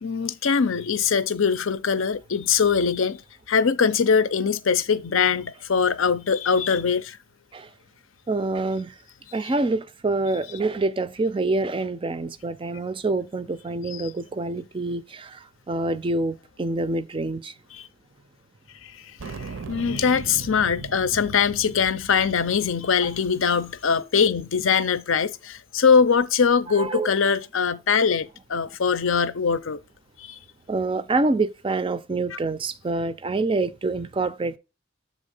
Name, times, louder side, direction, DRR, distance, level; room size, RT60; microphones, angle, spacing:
voice 1, 0.0-3.2 3.5-7.2 13.9-14.1 17.7-17.9 18.8-29.8 30.2-30.4 32.3-32.4, left 6 dB, 70° left, 0.6 m, -22 dB
voice 2, 8.3-8.9 9.3-17.5 26.7-27.1 30.7-34.6, right 2 dB, 25° right, 0.4 m, -26 dB
sound 1, 19.2-23.9, right 4 dB, 75° right, 0.6 m, -39 dB
7.4 x 3.5 x 5.3 m
head